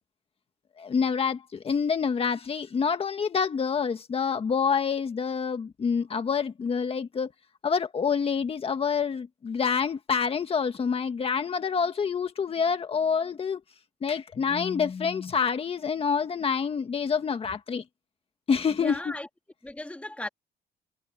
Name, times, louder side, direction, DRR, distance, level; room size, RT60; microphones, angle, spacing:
voice 1, 0.8-7.3 7.6-13.6 14.0-17.8 18.5-19.0, left 6 dB, 35° left, 1.6 m, -27 dB
voice 2, 18.8-19.3 19.6-20.3, left 1 dB, 5° left, 1.8 m, -36 dB
cardioid pair, 110°, 17 cm